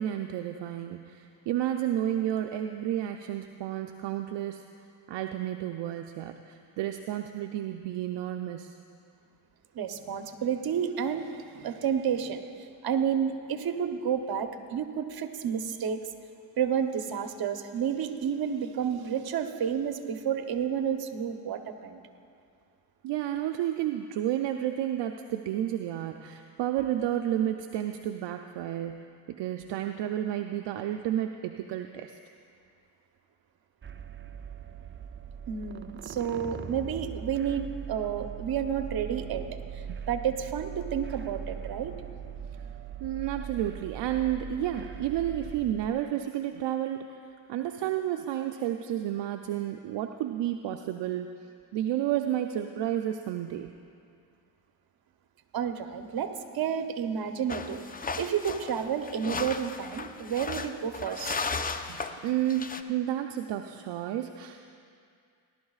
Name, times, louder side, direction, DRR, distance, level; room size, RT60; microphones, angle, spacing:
voice 1, 0.0-4.6 5.1-8.7 23.0-32.2 39.9-40.0 43.0-47.1 47.5-51.3 51.7-53.7 61.9-64.6, right 11 dB, 70° right, 5 dB, 0.6 m, -31 dB
voice 2, 9.7-12.4 12.8-16.1 16.6-22.0 35.5-42.0 55.5-57.8 58.2-61.4, right 8 dB, 55° right, 7 dB, 1.0 m, -30 dB
sound 1, 33.8-45.9, right 7 dB, 25° right, 0.5 m, -40 dB
sound 2, 57.5-62.8, left 4 dB, 20° left, 0.5 m, -35 dB
18.5 x 11.5 x 2.4 m, 2.3 s
supercardioid pair, 70°, 44 cm